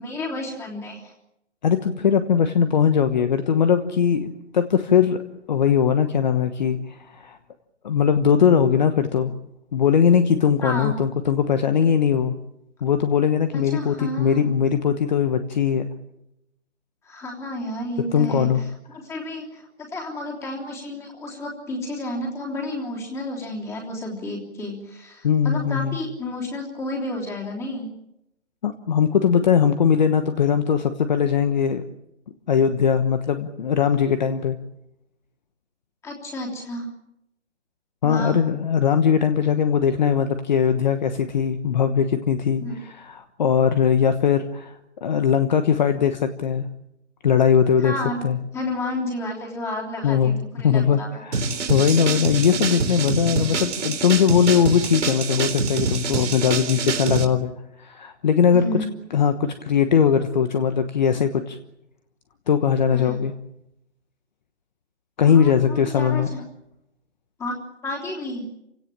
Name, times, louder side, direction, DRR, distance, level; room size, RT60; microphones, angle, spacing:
voice 1, 0.0-1.1 10.6-10.9 13.5-14.5 17.0-18.7 19.0-27.9 36.0-36.9 38.0-38.4 42.6-42.8 47.8-48.2 48.5-51.2 58.5-58.9 62.9-63.2 65.2-66.4 67.4-67.6 67.8-68.5, left 1 dB, 5° left, 0 dB, 3.3 m, -31 dB
voice 2, 1.6-5.2 5.5-7.4 7.8-9.3 9.7-12.3 12.8-15.9 18.1-18.6 25.2-26.0 28.6-31.8 32.5-34.6 38.0-44.7 45.0-46.7 47.2-48.0 48.2-48.4 50.0-50.3 50.6-51.4 51.7-57.5 57.8-58.8 59.1-61.6 62.5-63.3 65.2-66.3, left 7 dB, 40° left, 10 dB, 1.2 m, -20 dB
sound 1, 51.3-57.2, right 4 dB, 70° right, 3.9 m, -25 dB
28.5 x 17.5 x 8.8 m, 0.85 s
hypercardioid pair, 165°, 37 cm